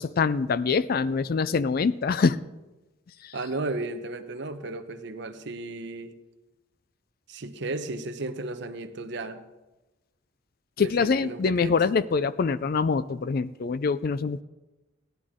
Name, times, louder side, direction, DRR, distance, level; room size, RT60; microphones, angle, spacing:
voice 1, 0.0-2.4 3.2-3.4 10.8-14.4, left 5 dB, 45° left, 16 dB, 0.4 m, -24 dB
voice 2, 3.3-6.1 7.3-9.4 10.8-11.8, right 2 dB, 60° right, 9 dB, 0.8 m, -34 dB
16.0 x 10.5 x 3.7 m, 1.1 s
head